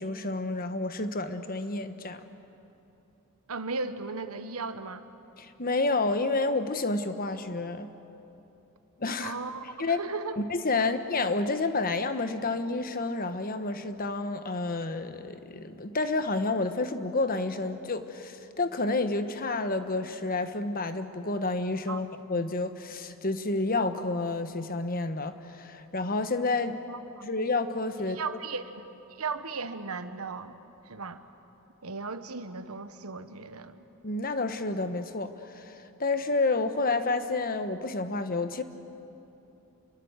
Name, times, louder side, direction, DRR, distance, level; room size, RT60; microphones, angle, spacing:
voice 1, 0.0-2.2 5.4-7.9 9.0-9.3 9.8-10.0 10.4-26.8 27.2-28.2 34.0-38.6, left 3 dB, 40° left, 9 dB, 1.3 m, -29 dB
voice 2, 3.5-5.0 9.2-10.4 21.9-22.1 26.9-27.0 28.0-28.8 29.1-30.5 30.8-31.2 31.8-33.8, right 4 dB, 80° right, 10 dB, 1.3 m, -36 dB
29.5 x 22.5 x 8.1 m, 3.0 s
head